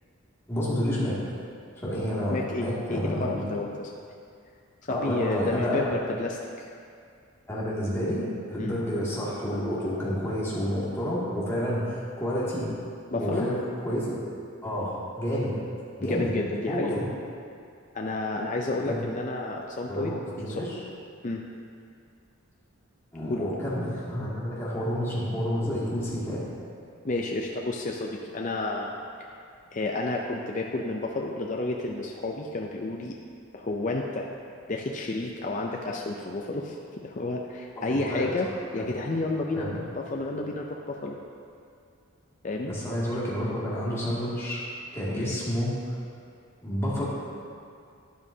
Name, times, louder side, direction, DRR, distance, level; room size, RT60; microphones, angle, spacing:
voice 1, 0.5-1.2 1.8-3.5 4.9-5.9 7.5-12.7 13.1-13.6 13.8-14.2 14.6-15.5 16.0-16.3 16.7-17.1 18.8-19.0 19.9-20.8 23.1-26.4 37.8-38.3 38.8-38.9 39.5-39.8 42.7-44.6 44.9-46.0 46.6-47.0, equal, 10° left, -9 dB, 2.3 m, -29 dB
voice 2, 2.3-3.9 4.9-6.7 8.6-8.7 13.1-13.5 16.0-17.0 17.9-20.2 20.4-20.7 21.2-21.4 23.3-23.5 27.0-29.0 29.7-33.2 33.5-34.3 34.7-41.2 42.4-42.7 45.2-45.3, left 2 dB, 35° left, 0 dB, 0.5 m, -31 dB
12.5 x 9.7 x 2.8 m, 2.4 s
head